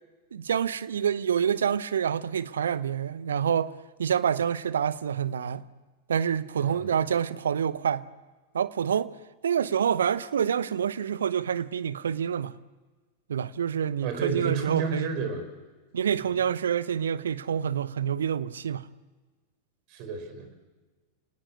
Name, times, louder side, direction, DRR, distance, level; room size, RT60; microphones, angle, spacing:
voice 1, 0.3-3.7 4.0-5.6 6.1-8.0 8.5-9.1 9.4-12.5 13.3-15.1 15.9-18.9, right 8 dB, 65° right, 0.8 m, -27 dB
voice 2, 14.0-15.4 19.9-20.5, right 4 dB, 45° right, 4.7 m, -31 dB
29.0 x 19.0 x 8.6 m
figure-of-eight pair, 90°, 0 cm